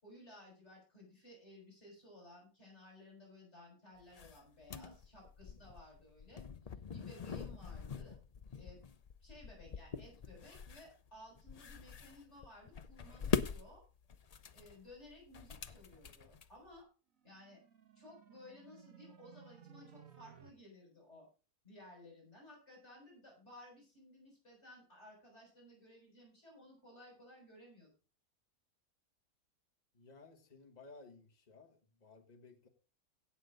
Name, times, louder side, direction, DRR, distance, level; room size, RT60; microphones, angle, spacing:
voice 1, 0.0-6.4 6.9-8.2 8.5-8.8 9.2-13.8 14.5-16.9 17.2-17.6 18.0-21.3 21.6-27.9, left 1 dB, 45° left, -1 dB, 6.5 m, -57 dB
sound 1, 4.0-16.8, left 6 dB, 65° left, 0.4 m, -43 dB
sound 2, 17.2-20.5, right 8 dB, 60° right, 1.6 m, -59 dB
voice 2, 29.9-32.7, left 3 dB, 30° left, 3 dB, 1.6 m, -58 dB
17.0 x 6.7 x 3.9 m, 0.35 s
omnidirectional pair, 1.6 m